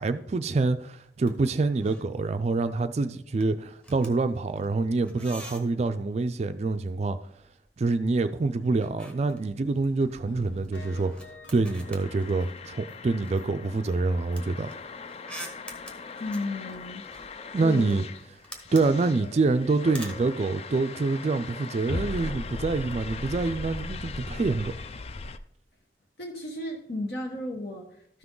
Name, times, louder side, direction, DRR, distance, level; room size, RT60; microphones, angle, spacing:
voice 1, 0.0-7.2 7.8-11.3 11.5-14.7 17.5-18.0 18.7-24.8, right 3 dB, 35° right, 0.3 m, -26 dB
sound 1, 1.0-1.4 1.6-2.2 2.4-2.8 3.1-6.0 7.2-8.2 8.5-12.8 13.2-20.3, right 1 dB, 5° left, 1.1 m, -47 dB
sound 2, 10.2-13.0 13.4-13.5 13.8-13.9 14.3-14.4, left 3 dB, 85° left, 0.8 m, -48 dB
sound 3, 11.6-25.4, left 3 dB, 35° left, 0.4 m, -39 dB
voice 2, 16.2-18.0 26.2-28.2, left 1 dB, 65° left, 1.2 m, -35 dB
13.0 x 5.9 x 3.8 m
head